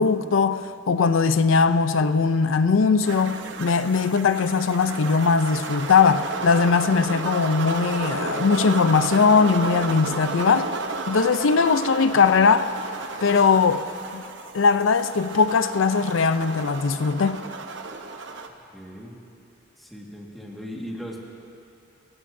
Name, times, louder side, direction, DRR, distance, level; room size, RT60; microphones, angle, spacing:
voice 1, 0.0-10.7 11.1-12.7 13.2-14.2 14.5-17.4, left 5 dB, 85° left, 11 dB, 0.5 m, -20 dB
sound 1, 3.0-18.5, right 4 dB, 65° right, 0.8 m, -33 dB
voice 2, 18.7-19.2 19.8-21.2, equal, ahead, -3 dB, 1.7 m, -38 dB
27.5 x 15.0 x 2.7 m, 2.7 s
head